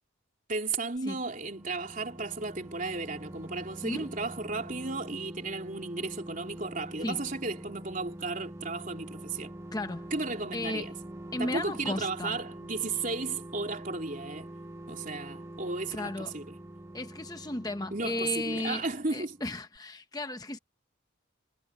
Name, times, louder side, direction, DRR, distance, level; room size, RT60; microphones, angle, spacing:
voice 1, 0.5-9.5 10.1-10.9 11.4-14.5 14.9-16.5 17.9-19.4, right 3 dB, 45° right, 3.7 m, -34 dB
sound 1, 1.0-19.5 19.8-19.9, right 1 dB, 15° right, 1.1 m, -45 dB
voice 2, 9.7-10.1 10.5-10.9 11.3-12.4 15.9-16.3 16.9-18.9 19.1-20.6, left 2 dB, 20° left, 0.9 m, -35 dB
head